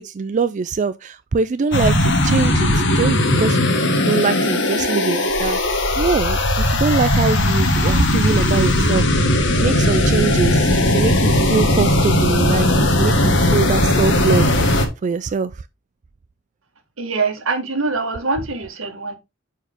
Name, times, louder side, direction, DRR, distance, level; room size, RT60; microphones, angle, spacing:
voice 1, 0.0-5.6 6.0-9.3 9.6-15.6, right 4 dB, 35° right, 0.3 m, -23 dB
sound 1, 1.7-14.9, left 1 dB, 65° left, 1.7 m, -17 dB
voice 2, 17.0-19.2, right 3 dB, 85° right, 1.7 m, -23 dB
9.0 x 4.7 x 3.6 m
head